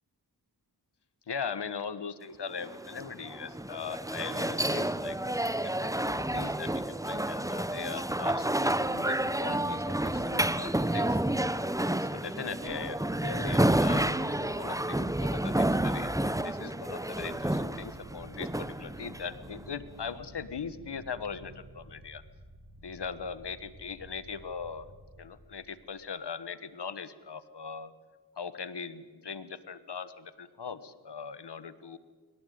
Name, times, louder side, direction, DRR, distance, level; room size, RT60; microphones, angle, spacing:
voice 1, 1.3-11.2 12.0-16.1 16.4-22.2 22.8-24.9 25.2-27.9 28.4-32.0, left 6 dB, 85° left, 14 dB, 1.4 m, -40 dB
sound 1, 2.6-19.6, right 1 dB, 10° right, 1.0 m, -30 dB
sound 2, 17.1-25.8, right 1 dB, 85° right, 7.1 m, -51 dB
24.0 x 18.5 x 9.4 m, 1.4 s
cardioid pair, 40°, 40 cm